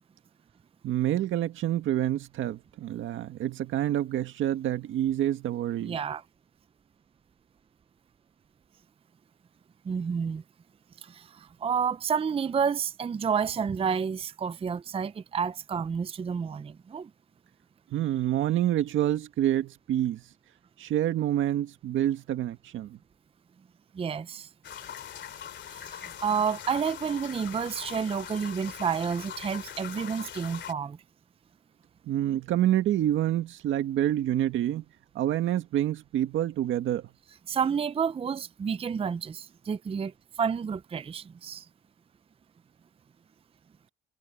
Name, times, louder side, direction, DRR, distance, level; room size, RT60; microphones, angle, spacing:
voice 1, 0.8-6.0 17.9-20.2 20.8-23.0 32.1-34.8 35.2-37.1, right 12 dB, 80° right, 1.8 m, -27 dB
voice 2, 5.8-6.2 9.8-10.4 11.0-17.1 23.9-24.5 25.7-31.0 37.5-41.7, right 6 dB, 30° right, 0.5 m, -30 dB
sound 1, 24.6-30.7, left 9 dB, 65° left, 2.7 m, -42 dB
cardioid pair, 90°, 20 cm